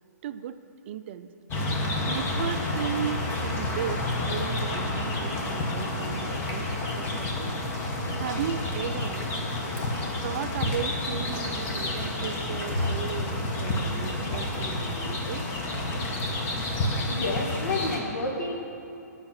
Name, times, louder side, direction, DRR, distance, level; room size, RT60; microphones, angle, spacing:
voice 1, 0.2-0.6 0.9-1.3 2.0-7.6 8.2-9.3 10.2-15.5, right 9 dB, 40° right, 11 dB, 0.4 m, -36 dB
sound 1, 1.5-18.0, left 2 dB, 25° left, 1.1 m, -30 dB
voice 2, 17.1-18.6, left 2 dB, 80° left, 1 dB, 1.6 m, -29 dB
8.7 x 5.8 x 7.3 m, 2.6 s
hypercardioid pair, 140°, 9 cm